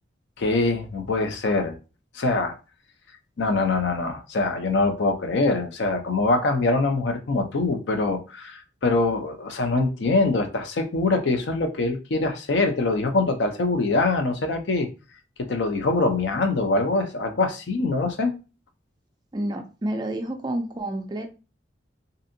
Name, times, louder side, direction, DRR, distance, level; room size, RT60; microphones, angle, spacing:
voice 1, 0.4-1.8 2.1-2.6 3.4-14.9 15.4-18.3, left 3 dB, 70° left, 0.5 m, -23 dB
voice 2, 19.3-21.3, right 1 dB, 20° right, 0.3 m, -29 dB
2.6 x 2.5 x 2.6 m
head